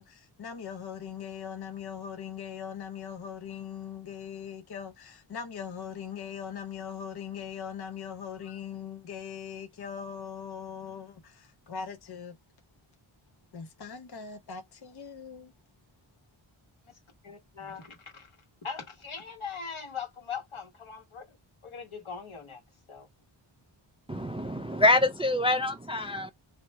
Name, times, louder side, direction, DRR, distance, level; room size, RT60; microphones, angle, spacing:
voice 1, 0.0-12.4 13.5-15.5, left 7 dB, 50° left, 0.7 m, -40 dB
voice 2, 17.2-18.3 18.6-21.4 21.6-22.6 22.9-23.1, left 6 dB, 70° left, 1.5 m, -40 dB
voice 3, 24.1-26.3, left 2 dB, 15° right, 0.3 m, -25 dB
2.8 x 2.2 x 4.1 m
wide cardioid pair, 65°, 50 cm